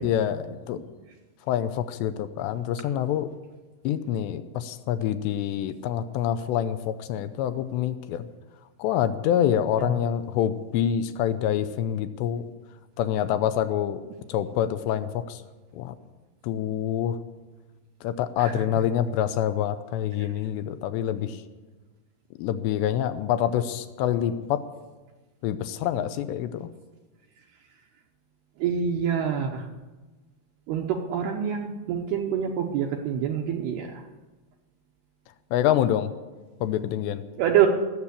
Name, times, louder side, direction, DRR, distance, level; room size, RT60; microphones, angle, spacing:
voice 1, 0.0-0.8 1.5-3.3 3.8-8.3 8.8-12.5 13.0-14.0 14.3-15.4 15.7-15.9 16.4-17.2 18.0-21.4 22.4-24.6 25.4-26.7 35.5-36.1 36.6-37.2, left 10 dB, 80° left, 12 dB, 2.6 m, -26 dB
voice 2, 28.6-29.7 30.7-34.0 37.4-37.7, right 8 dB, 75° right, 1 dB, 2.5 m, -26 dB
19.0 x 7.4 x 8.3 m, 1.2 s
omnidirectional pair, 5.5 m